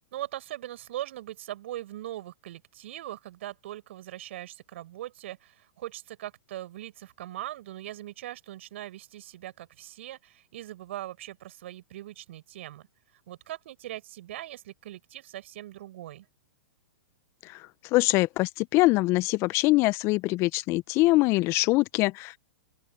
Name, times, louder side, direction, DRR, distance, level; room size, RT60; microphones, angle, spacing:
voice 1, 0.1-12.9 13.3-16.3, right 14 dB, 60° right, 6.2 m, -40 dB
voice 2, 17.9-22.4, left 21 dB, 35° left, 1.0 m, -23 dB
open air
hypercardioid pair, 110°, 8 cm